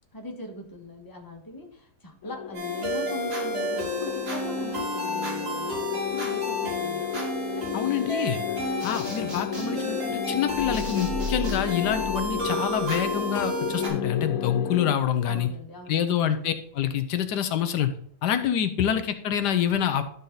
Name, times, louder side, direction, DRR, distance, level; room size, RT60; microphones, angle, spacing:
voice 1, 0.1-7.1 7.5-8.2 15.2-16.2, left 1 dB, 15° left, 1 dB, 1.3 m, -40 dB
sound 1, 2.2-15.0, left 9 dB, 70° left, 0.9 m, -33 dB
sound 2, 2.5-13.9, equal, 75° right, 3.4 m, -31 dB
voice 2, 7.7-8.4 8.8-15.5 15.9-17.9 18.2-20.0, left 9 dB, 90° left, 9 dB, 1.4 m, -26 dB
sound 3, 10.5-13.2, equal, 60° right, 2.5 m, -36 dB
12.0 x 4.2 x 3.9 m, 0.63 s
omnidirectional pair, 1.7 m